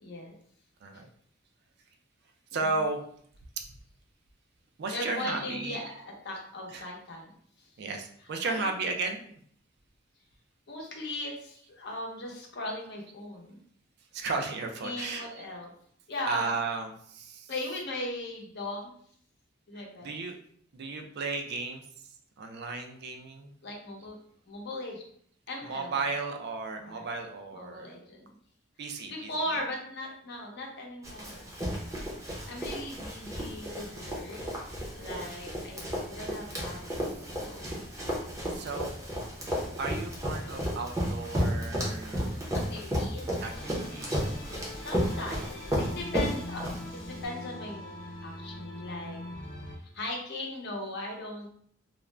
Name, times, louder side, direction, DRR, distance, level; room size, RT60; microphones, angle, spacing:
voice 1, 0.0-0.3 4.9-7.3 8.4-8.7 10.7-13.6 14.8-15.7 16.1-16.5 17.5-18.9 19.7-20.1 23.6-24.2 24.5-25.0 25.5-26.0 26.8-27.1 27.5-28.3 29.1-31.5 32.5-34.4 35.0-35.8 36.1-37.0 37.4-37.7 42.5-43.3 44.7-46.6 47.1-49.2 49.8-51.5, left 1 dB, 60° left, -1 dB, 0.7 m, -38 dB
voice 2, 2.5-3.0 4.8-5.8 6.7-6.9 7.8-9.2 14.1-15.4 16.3-17.5 19.7-20.4 20.7-21.8 22.4-23.5 25.6-27.9 28.8-29.3 36.9-37.0 37.6-37.8 38.5-38.9 39.8-42.6 43.4-44.2, right 3 dB, 55° right, 4 dB, 0.4 m, -34 dB
Run, 31.0-47.2, equal, 15° right, 0.6 m, -33 dB
sound 1, 43.5-49.8, left 1 dB, 85° left, 0.9 m, -42 dB
2.4 x 2.1 x 3.2 m, 0.62 s
head